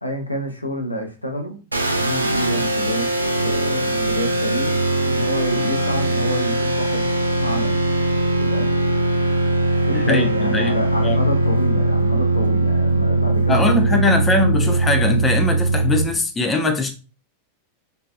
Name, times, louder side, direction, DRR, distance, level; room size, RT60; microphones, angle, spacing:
voice 1, 0.0-1.6 1.9-3.1 3.4-7.0 7.4-7.8 8.4-8.8 9.9-13.8 14.1-14.2, equal, 85° left, 0.5 m, -27 dB
sound 1, 1.7-16.0, right 2 dB, 80° right, 0.3 m, -20 dB
voice 2, 9.9-10.8 11.0-11.2 13.5-16.9, left 2 dB, 15° left, 0.5 m, -21 dB
2.6 x 2.3 x 2.3 m
figure-of-eight pair, 90°, 0 cm